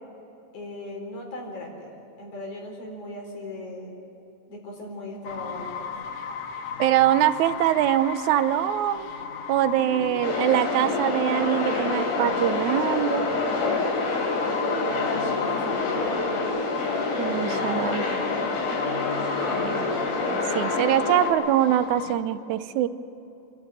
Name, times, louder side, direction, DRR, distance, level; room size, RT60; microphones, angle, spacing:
voice 1, 0.5-1.9 2.2-4.0 4.5-5.9 9.9-10.6 14.2-16.4 17.2-18.6, left 1 dB, 75° left, 1 dB, 5.5 m, -37 dB
sound 1, 5.2-22.2, left 6 dB, 60° left, 2.0 m, -35 dB
voice 2, 6.8-9.1 9.5-13.3 17.2-18.0 19.5-19.9 20.3-22.9, right 12 dB, 80° right, 12 dB, 2.2 m, -23 dB
sound 2, 10.2-21.3, left 3 dB, 90° left, 4.5 m, -27 dB
29.0 x 13.5 x 9.0 m, 2.9 s
omnidirectional pair, 3.4 m